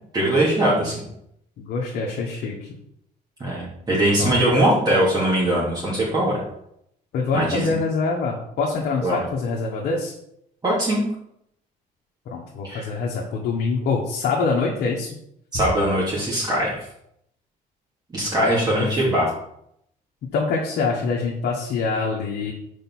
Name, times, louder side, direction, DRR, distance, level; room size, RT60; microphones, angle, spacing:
voice 1, 0.1-1.0 3.4-6.4 7.3-7.7 9.0-9.2 10.6-11.0 12.6-12.9 15.5-16.8 18.1-19.3, right 1 dB, 25° right, -6 dB, 2.7 m, -21 dB
voice 2, 1.6-2.7 4.2-4.4 7.1-10.1 12.2-15.2 18.5-19.2 20.2-22.5, left 4 dB, 70° left, -2 dB, 1.6 m, -25 dB
5.3 x 5.0 x 6.3 m, 0.74 s
cardioid pair, 110°, 17 cm